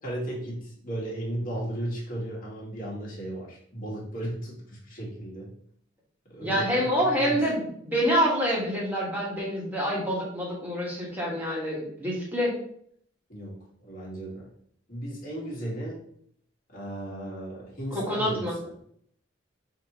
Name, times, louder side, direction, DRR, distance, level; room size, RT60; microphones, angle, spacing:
voice 1, 0.0-5.5 6.3-7.4 13.3-14.5 14.9-16.0 16.7-18.7, right 1 dB, 45° left, -5 dB, 1.6 m, -35 dB
voice 2, 6.4-12.5 17.9-18.6, equal, 10° right, -4 dB, 1.4 m, -27 dB
5.6 x 2.8 x 3.0 m, 0.65 s
head